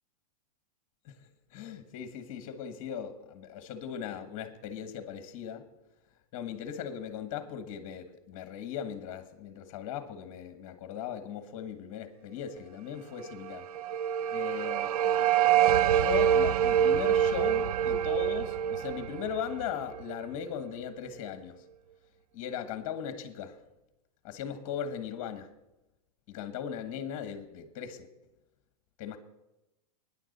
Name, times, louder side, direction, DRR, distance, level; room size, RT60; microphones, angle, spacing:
voice 1, 1.5-5.7 6.3-13.7 14.3-15.3 15.9-21.6 22.3-23.6 24.2-25.5 26.3-28.1 29.0-29.2, left 8 dB, 40° left, 1.5 m, -38 dB
sound 1, 13.4-20.5, right 10 dB, 75° right, 0.4 m, -26 dB
20.5 x 10.0 x 4.2 m
hypercardioid pair, 140°, 20 cm